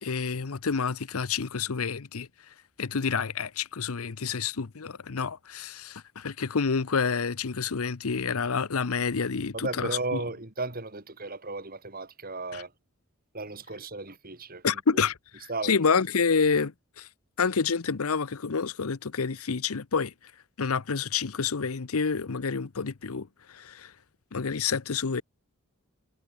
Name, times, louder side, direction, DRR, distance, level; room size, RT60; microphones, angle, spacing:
voice 1, 0.0-2.3 2.8-10.2 12.5-12.6 14.6-15.1 15.6-17.1 17.4-20.1 20.6-23.9 24.3-25.2, left 5 dB, 85° left, 0.8 m, -28 dB
voice 2, 9.5-12.7 13.3-15.0 15.5-15.8, right 3 dB, 45° right, 3.5 m, -35 dB
head